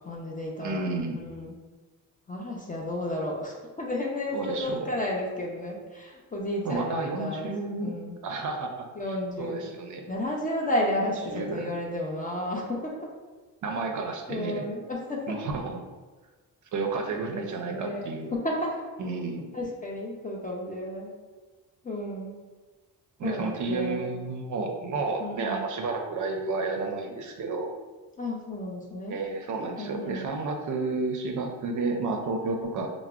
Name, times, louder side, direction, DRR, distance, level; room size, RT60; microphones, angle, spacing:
voice 1, 0.0-1.6 2.3-8.2 9.0-9.7 10.1-13.1 14.3-15.4 17.2-18.0 18.3-18.9 19.5-21.1 21.8-22.4 23.2-24.1 25.2-25.7 28.2-29.2 29.8-30.3, left 1 dB, 25° left, -2 dB, 0.3 m, -32 dB
voice 2, 0.6-1.2 4.3-4.9 6.6-7.9 8.2-8.9 9.4-10.0 11.3-11.6 13.6-14.7 15.3-15.8 16.7-18.3 19.0-19.4 23.2-27.7 29.1-32.9, right 3 dB, 55° right, 3 dB, 0.4 m, -31 dB
4.7 x 2.0 x 2.3 m, 1.3 s
wide cardioid pair, 150°, 37 cm